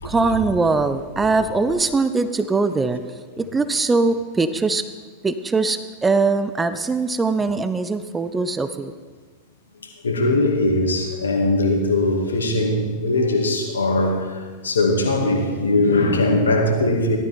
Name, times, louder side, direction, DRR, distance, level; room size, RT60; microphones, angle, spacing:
voice 1, 0.0-3.0 3.4-4.8 5.2-8.9, right 3 dB, 15° right, 11 dB, 0.7 m, -21 dB
voice 2, 10.0-17.2, left 2 dB, 70° left, 2 dB, 2.2 m, -20 dB
15.5 x 12.5 x 4.3 m, 1.4 s
figure-of-eight pair, 90°, 0 cm